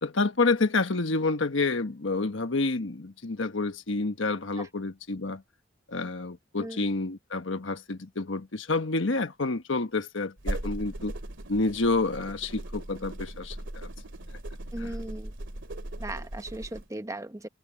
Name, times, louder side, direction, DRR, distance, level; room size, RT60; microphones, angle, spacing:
voice 1, 0.0-5.4 5.9-11.1 11.5-13.9 14.8-14.9, left 3 dB, 80° left, 1.3 m, -29 dB
sound 1, 10.4-16.9, right 1 dB, 70° right, 2.6 m, -38 dB
voice 2, 14.7-15.3 16.0-17.5, right 1 dB, 15° right, 1.0 m, -38 dB
head